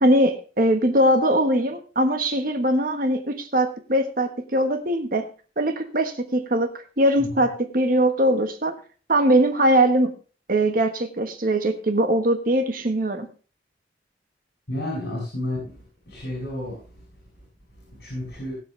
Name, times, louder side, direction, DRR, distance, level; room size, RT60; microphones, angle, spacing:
voice 1, 0.0-5.3 5.6-6.7 7.0-8.7 9.1-10.1 10.5-13.3, right 1 dB, 50° right, 6 dB, 1.4 m, -21 dB
voice 2, 14.7-15.8 16.1-16.8 18.0-18.5, left 1 dB, 60° left, -3 dB, 7.3 m, -31 dB
20.5 x 7.5 x 3.3 m, 0.37 s
head